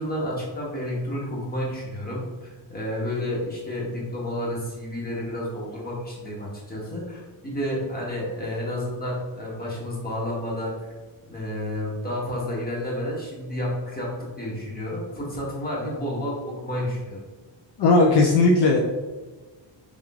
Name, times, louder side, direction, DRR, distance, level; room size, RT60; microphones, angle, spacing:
voice 1, 0.0-10.9 11.3-17.2, left 1 dB, 20° left, -4 dB, 1.4 m, -30 dB
voice 2, 17.8-18.8, left 3 dB, 60° left, 0 dB, 0.6 m, -17 dB
3.6 x 3.1 x 3.6 m, 1.3 s
cardioid pair, 120°, 47 cm